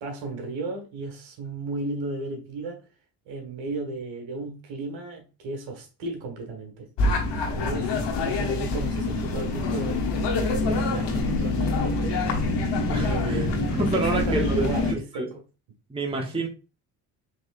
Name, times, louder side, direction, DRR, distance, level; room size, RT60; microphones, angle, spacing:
voice 1, 0.0-2.8 3.3-6.9 7.5-12.2 13.0-15.3 16.3-16.4, right 3 dB, 70° right, 1.5 m, -34 dB
sound 1, 7.0-14.9, left 2 dB, 60° left, 1.2 m, -25 dB
voice 2, 12.9-15.3 15.9-16.5, right 3 dB, 10° right, 1.1 m, -29 dB
4.1 x 3.4 x 2.5 m
hypercardioid pair, 60°, 47 cm